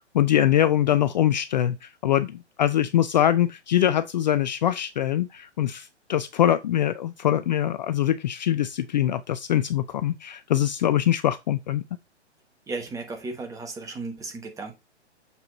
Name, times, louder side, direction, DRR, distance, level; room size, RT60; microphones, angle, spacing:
voice 1, 0.1-11.8, left 11 dB, 40° left, 0.4 m, -23 dB
voice 2, 12.7-14.7, right 3 dB, 10° right, 1.1 m, -35 dB
6.9 x 4.4 x 4.0 m
hypercardioid pair, 125°, 35 cm